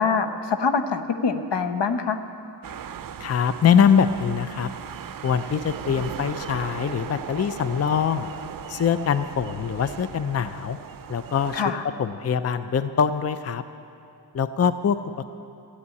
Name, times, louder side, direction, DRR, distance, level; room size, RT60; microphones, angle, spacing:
voice 1, 0.0-2.2 11.5-11.8, left 5 dB, 80° left, 8 dB, 0.9 m, -24 dB
sound 1, 2.6-11.6, right 8 dB, 55° right, 0.5 m, -38 dB
voice 2, 3.2-4.7 5.2-8.3 8.7-10.8 11.1-11.6 12.0-13.6 14.3-15.2, left 7 dB, 35° left, 12 dB, 0.5 m, -23 dB
14.0 x 8.5 x 8.4 m, 2.6 s
wide cardioid pair, 100°, 42 cm